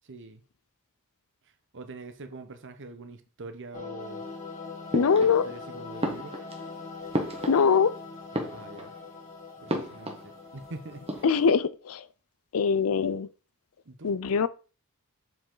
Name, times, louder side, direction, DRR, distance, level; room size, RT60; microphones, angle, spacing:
voice 1, 0.0-0.4 1.7-4.3 5.2-6.4 8.5-8.9 9.6-11.2 13.8-14.1, right 3 dB, 55° right, 1.0 m, -44 dB
sound 1, 3.7-11.7, left 4 dB, 35° left, 1.7 m, -42 dB
voice 2, 4.9-5.5 7.5-7.9 11.2-12.1 12.5-13.3 14.0-14.5, left 6 dB, 70° left, 0.5 m, -23 dB
sound 2, 4.9-5.6 6.0-8.0 8.2-9.1 9.7-10.7 10.9-11.5, right 1 dB, 25° right, 1.3 m, -34 dB
7.4 x 4.8 x 3.9 m
head